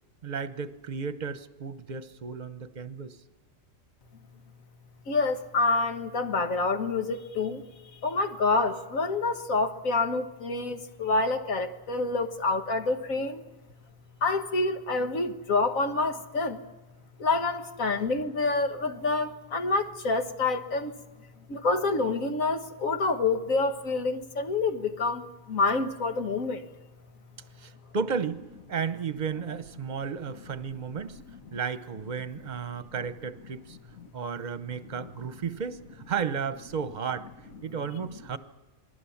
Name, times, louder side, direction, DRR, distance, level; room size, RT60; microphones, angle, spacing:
voice 1, 0.2-3.2 27.6-28.4 28.7-31.2 31.5-33.8 34.1-35.8 36.1-37.3 37.6-38.4, right 6 dB, 40° right, 0.9 m, -33 dB
voice 2, 5.1-7.6 8.0-13.4 14.2-16.6 17.2-20.9 21.5-26.7 35.0-35.1, left 3 dB, 90° left, 1.8 m, -27 dB
27.0 x 20.0 x 7.2 m
omnidirectional pair, 1.4 m